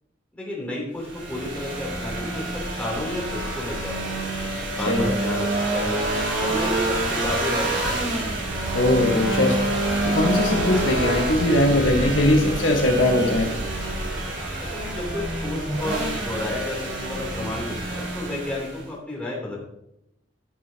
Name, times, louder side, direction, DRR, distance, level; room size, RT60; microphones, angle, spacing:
voice 1, 0.3-4.2 4.7-5.5 5.7-6.0 6.4-8.1 14.6-19.6, left 1 dB, 5° left, -4 dB, 3.2 m, -31 dB
sound 1, 1.0-18.9, right 1 dB, 80° right, 3.0 m, -27 dB
voice 2, 8.7-9.6 10.0-13.5, left 1 dB, 75° left, 1 dB, 1.5 m, -20 dB
14.5 x 6.2 x 2.9 m, 0.81 s
head